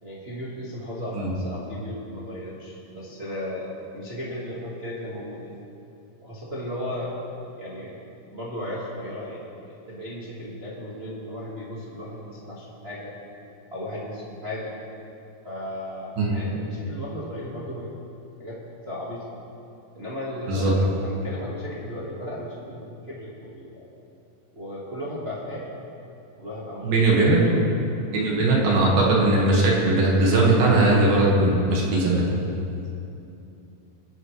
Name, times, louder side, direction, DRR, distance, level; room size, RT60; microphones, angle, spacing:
voice 1, 0.0-5.5 6.2-7.2 7.6-8.0 8.3-9.6 9.9-13.1 13.7-14.8 15.4-17.9 18.4-18.6 18.8-19.2 19.9-23.8 24.5-25.7 26.4-27.6 28.1-28.3 32.8-32.9, left 1 dB, 90° right, -7 dB, 0.5 m, -35 dB
voice 2, 26.8-27.4 28.1-32.2, right 2 dB, 65° right, -3 dB, 3.5 m, -19 dB
23.0 x 10.0 x 3.3 m, 2.7 s
omnidirectional pair, 4.7 m